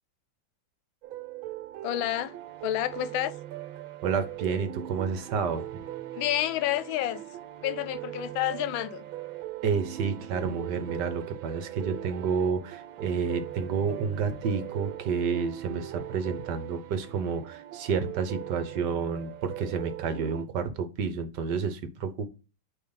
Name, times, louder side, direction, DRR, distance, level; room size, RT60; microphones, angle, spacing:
sound 1, 1.0-20.5, right 14 dB, 90° right, 1.5 m, -40 dB
voice 1, 1.8-2.3 2.6-3.3 6.1-7.2 7.6-9.0, left 13 dB, 80° left, 1.3 m, -29 dB
voice 2, 4.0-5.7 9.6-22.3, right 6 dB, 65° right, 1.4 m, -30 dB
8.6 x 3.4 x 3.9 m
omnidirectional pair, 2.2 m